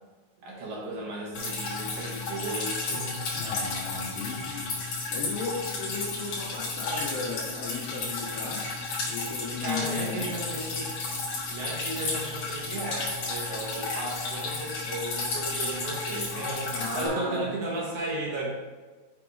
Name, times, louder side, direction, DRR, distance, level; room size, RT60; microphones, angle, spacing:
voice 1, 0.4-3.2 9.6-10.9 11.5-18.5, right 2 dB, 75° right, -3 dB, 1.8 m, -35 dB
Drip, 1.3-17.1, left 3 dB, 60° left, 1.8 m, -33 dB
voice 2, 3.3-4.7 5.1-8.7 9.1-10.4 16.7-17.5, left 4 dB, 80° left, -2 dB, 2.2 m, -35 dB
6.9 x 3.5 x 4.6 m, 1.3 s
omnidirectional pair, 4.6 m